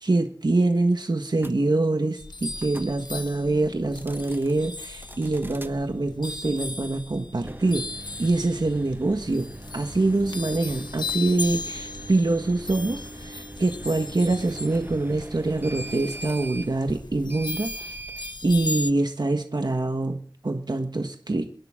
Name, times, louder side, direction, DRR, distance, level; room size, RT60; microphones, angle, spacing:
voice 1, 0.0-7.9 8.2-9.5 9.7-17.9 18.4-21.5, right 2 dB, 70° right, 5 dB, 1.5 m, -25 dB
sound 1, 1.4-1.5 2.6-2.9 3.8-4.5 5.0-5.7 7.3-18.4, right 2 dB, 30° right, 1.1 m, -42 dB
sound 2, 2.2-18.9, left 3 dB, 80° left, 1.2 m, -37 dB
28.5 x 11.0 x 3.7 m, 0.41 s
wide cardioid pair, 50°, 7 cm